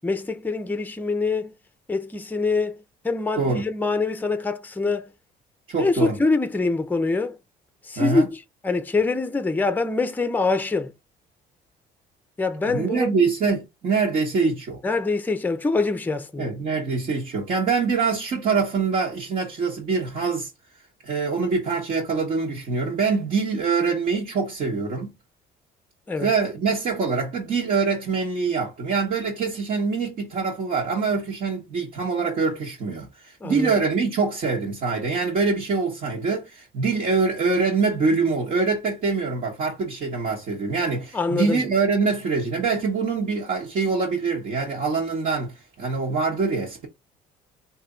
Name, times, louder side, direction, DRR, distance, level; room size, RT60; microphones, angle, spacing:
voice 1, 0.0-1.5 1.9-2.8 3.0-5.1 5.8-7.4 7.9-10.9 12.4-13.1 14.8-16.6 26.1-26.3 33.4-33.7 41.1-41.6, left 3 dB, 10° left, 0.6 m, -24 dB
voice 2, 5.7-6.2 8.0-8.3 12.6-14.8 16.4-20.5 21.0-25.1 26.2-46.9, right 4 dB, 55° right, 1.4 m, -24 dB
3.3 x 2.8 x 3.8 m
cardioid pair, 110°, 17 cm